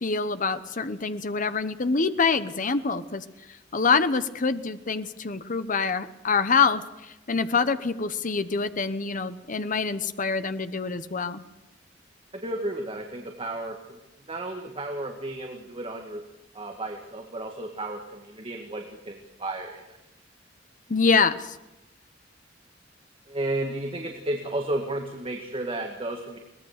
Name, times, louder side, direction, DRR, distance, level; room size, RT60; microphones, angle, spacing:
voice 1, 0.0-3.2 3.7-11.4 20.9-21.6, left 5 dB, 45° left, 12 dB, 1.0 m, -25 dB
voice 2, 12.3-14.0 14.3-16.2 16.5-20.0 23.3-26.4, right 1 dB, 30° right, 3 dB, 1.9 m, -33 dB
22.5 x 19.0 x 6.6 m, 0.96 s
head